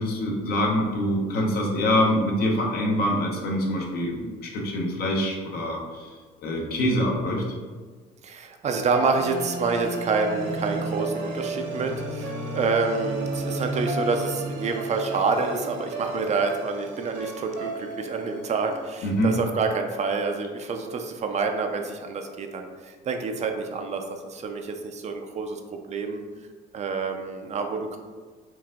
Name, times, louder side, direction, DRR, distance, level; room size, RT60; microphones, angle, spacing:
voice 1, 0.0-6.1 6.4-7.4 19.0-19.3, left 1 dB, 70° left, 0 dB, 1.0 m, -25 dB
voice 2, 8.2-25.6 25.9-26.2 26.7-28.0, right 4 dB, 40° right, 4 dB, 0.5 m, -28 dB
sound 1, 8.9-19.2, right 2 dB, 70° right, 1.3 m, -33 dB
4.6 x 2.6 x 3.6 m, 1.5 s
cardioid pair, 110°, 17 cm